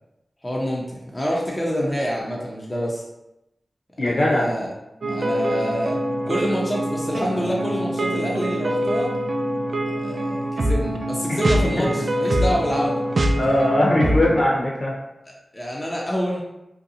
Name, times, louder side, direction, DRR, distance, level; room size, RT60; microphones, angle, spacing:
voice 1, 0.4-3.0 4.0-4.7 5.1-6.0 6.3-9.1 10.0-13.0 15.3-16.4, equal, 25° left, -3 dB, 0.6 m, -26 dB
voice 2, 4.0-4.5 11.3-11.4 11.8-11.9 13.4-14.9, left 1 dB, 60° left, -3 dB, 0.8 m, -20 dB
sound 1, 5.0-14.4, right 1 dB, 65° right, 0.3 m, -24 dB
2.6 x 2.3 x 2.7 m, 0.91 s
cardioid pair, 40°, 0 cm